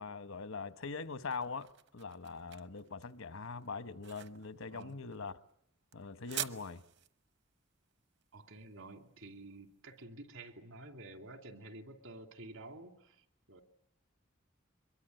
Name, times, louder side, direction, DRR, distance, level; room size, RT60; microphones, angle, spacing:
voice 1, 0.0-5.4 5.9-6.8, left 4 dB, 80° left, 1.1 m, -42 dB
sound 1, 0.8-9.8, right 11 dB, 55° right, 1.0 m, -48 dB
voice 2, 8.3-13.6, right 2 dB, 75° right, 2.6 m, -51 dB
24.0 x 22.0 x 9.2 m
head